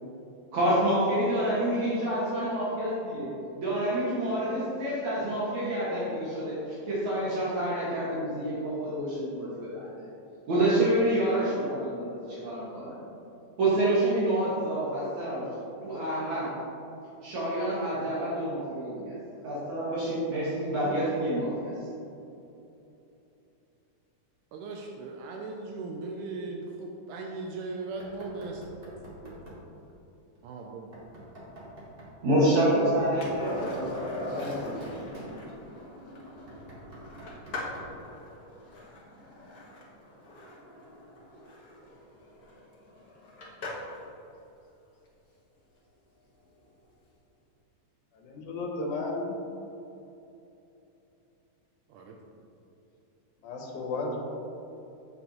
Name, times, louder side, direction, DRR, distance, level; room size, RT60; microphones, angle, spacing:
voice 1, 0.5-3.3 3.6-10.1 10.5-13.0 13.6-15.5 15.8-16.5 17.2-19.2 19.4-21.7 32.2-34.7, right 1 dB, 65° right, -9 dB, 3.0 m, -28 dB
voice 2, 24.5-28.6 29.1-29.3 30.4-30.9 51.9-52.2, right 3 dB, 80° right, 1 dB, 2.1 m, -38 dB
Knock, 28.0-29.7 30.9-32.2 32.9-35.8 36.3-38.1, right 1 dB, 45° right, 0.7 m, -47 dB
Skateboard, 33.2-44.1 46.6-46.7, left 2 dB, 55° left, 1.0 m, -41 dB
voice 3, 48.1-49.4 53.4-54.3, left 2 dB, 70° left, -1 dB, 2.4 m, -33 dB
7.9 x 7.8 x 3.0 m, 2.9 s
omnidirectional pair, 3.6 m